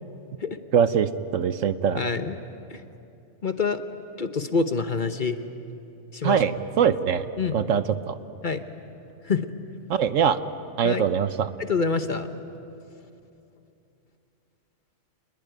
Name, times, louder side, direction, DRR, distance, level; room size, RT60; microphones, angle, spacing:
voice 1, 0.7-2.0 6.2-8.2 9.9-10.4 10.8-11.5, right 7 dB, 75° right, 12 dB, 1.2 m, -23 dB
voice 2, 2.0-2.4 2.7-2.8 3.4-3.8 4.2-5.4 6.1-6.4 7.4-7.6 8.4-8.6 9.2-9.5 10.8-11.0 11.7-12.3, left 4 dB, 40° left, 9 dB, 1.0 m, -26 dB
28.0 x 21.0 x 9.3 m, 2.8 s
omnidirectional pair, 1.4 m